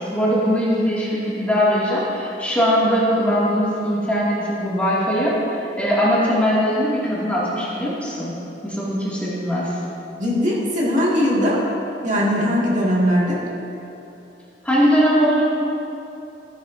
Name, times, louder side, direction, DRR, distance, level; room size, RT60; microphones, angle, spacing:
voice 1, 0.0-8.3 8.6-9.7 14.6-15.4, equal, 10° left, -8 dB, 2.1 m, -20 dB
voice 2, 10.2-11.6 12.0-13.4, equal, 45° right, -6 dB, 2.0 m, -19 dB
14.0 x 9.8 x 2.6 m, 2.9 s
head